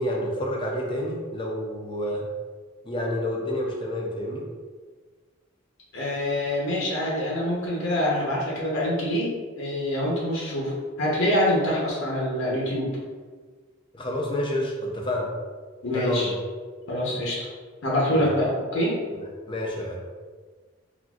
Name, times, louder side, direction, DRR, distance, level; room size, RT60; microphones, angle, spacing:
voice 1, 0.0-2.3 2.8-4.4 13.9-15.3 15.9-16.4 18.1-18.3 19.1-20.0, left 1 dB, 25° left, -1 dB, 0.4 m, -29 dB
voice 2, 5.9-9.3 9.6-12.9 15.8-16.3 16.9-17.5 17.8-18.9, left 1 dB, 80° left, -5 dB, 0.7 m, -25 dB
3.8 x 2.5 x 2.3 m, 1.5 s
head